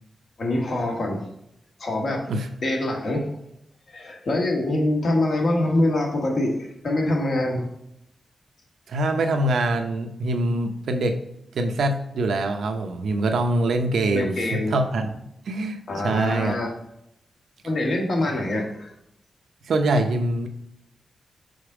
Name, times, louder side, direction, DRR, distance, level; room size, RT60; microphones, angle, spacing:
voice 1, 0.4-1.2 1.8-2.2 2.6-3.3 3.9-7.7 14.1-14.8 15.9-16.7 17.6-18.9, left 1 dB, 55° left, 0 dB, 1.5 m, -24 dB
voice 2, 8.9-11.2 11.5-15.1 15.5-16.5 19.7-20.5, right 2 dB, 85° right, 5 dB, 0.7 m, -24 dB
5.2 x 3.9 x 4.8 m, 0.78 s
wide cardioid pair, 140°, 0 cm